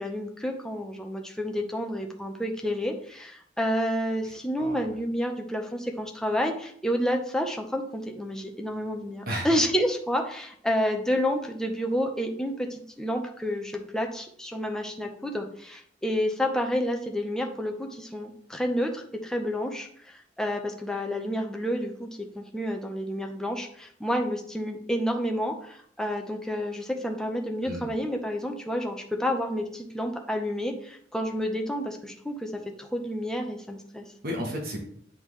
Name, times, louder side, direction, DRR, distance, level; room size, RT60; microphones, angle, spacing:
voice 1, 0.0-34.1, equal, 5° left, 2 dB, 0.7 m, -30 dB
voice 2, 4.2-4.8 9.3-9.5 27.6-27.9 34.2-34.8, equal, 55° right, 0 dB, 1.2 m, -33 dB
8.9 x 3.7 x 3.2 m, 0.62 s
head